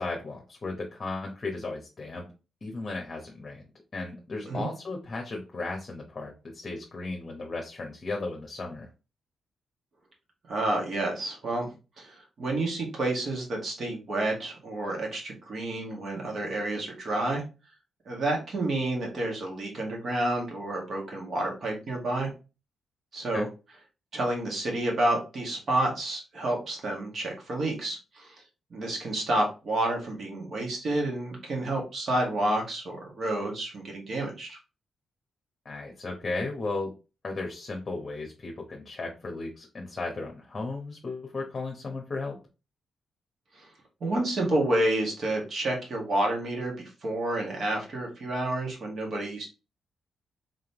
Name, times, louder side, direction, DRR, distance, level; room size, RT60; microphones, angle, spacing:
voice 1, 0.0-2.3 2.6-3.6 3.9-8.9 23.3-23.5 35.6-36.9 37.2-42.4, left 3 dB, 40° left, 1 dB, 1.0 m, -35 dB
voice 2, 10.5-17.4 18.1-22.3 23.1-23.5 24.1-28.4 28.7-34.6 43.5-43.7 44.0-49.5, right 1 dB, 55° right, 0 dB, 2.0 m, -29 dB
3.8 x 3.5 x 2.9 m, 0.30 s
cardioid pair, 80°, 0 cm